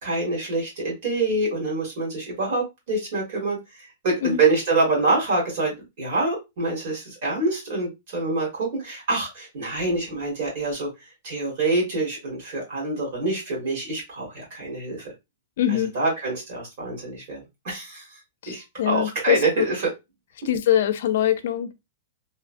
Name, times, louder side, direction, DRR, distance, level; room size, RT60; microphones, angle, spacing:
voice 1, 0.0-10.9 11.2-15.1 15.9-18.2 18.5-19.8, right 3 dB, 50° right, 1.6 m, -26 dB
voice 2, 15.6-15.9 18.4-19.7 20.4-21.7, left 11 dB, 60° left, 0.4 m, -23 dB
3.0 x 2.3 x 2.5 m
supercardioid pair, 170°, 0 cm